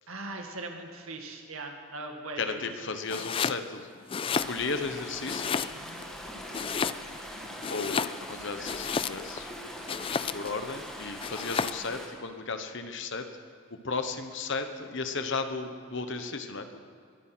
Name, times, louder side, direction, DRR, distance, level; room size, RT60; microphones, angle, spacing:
voice 1, 0.1-2.6 5.7-6.0, right 2 dB, 70° right, 3 dB, 2.1 m, -40 dB
voice 2, 2.4-3.9 4.3-5.7 7.7-9.5 10.1-13.3 13.7-16.8, left 4 dB, 55° left, 8 dB, 1.2 m, -35 dB
Domestic sounds home sounds, 3.1-3.6 4.0-4.9 5.3-6.0 6.5-7.3 7.6-9.4 9.9-10.6 11.2-11.9, left 6 dB, 25° left, 0.3 m, -32 dB
sound 1, 4.3-12.1, equal, ahead, 2.1 m, -42 dB
21.5 x 9.9 x 6.3 m, 2.3 s
head